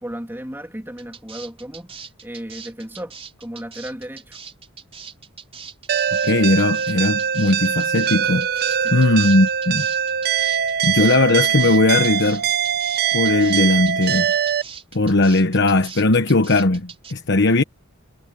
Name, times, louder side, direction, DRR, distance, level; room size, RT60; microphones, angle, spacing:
voice 1, 0.0-1.9 2.2-4.4 8.8-9.0, equal, 10° right, 2.9 m, -34 dB
sound 1, 1.0-17.1, right 6 dB, 30° right, 4.6 m, -40 dB
sound 2, 5.9-14.6, right 8 dB, 50° right, 0.6 m, -22 dB
voice 2, 6.2-9.9 10.8-12.5 13.1-14.3 14.9-17.6, left 2 dB, 55° left, 1.1 m, -18 dB
head